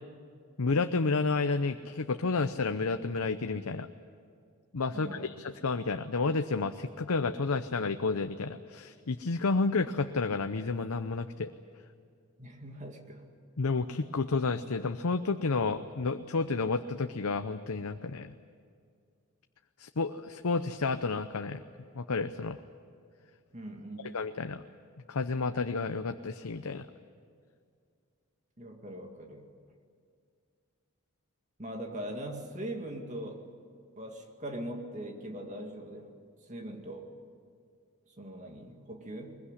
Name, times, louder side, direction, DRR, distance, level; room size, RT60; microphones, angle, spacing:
voice 1, 0.6-3.9 4.7-11.5 13.6-18.3 19.8-21.6 21.9-22.6 24.1-24.6 25.1-26.9, left 4 dB, 90° left, 8 dB, 0.8 m, -31 dB
voice 2, 4.9-5.3 12.4-13.2 23.5-24.2 28.6-29.5 31.6-33.4 34.0-36.1 36.5-37.1 38.2-39.4, right 1 dB, 35° right, 3 dB, 2.2 m, -41 dB
22.0 x 21.5 x 9.9 m, 2.2 s
head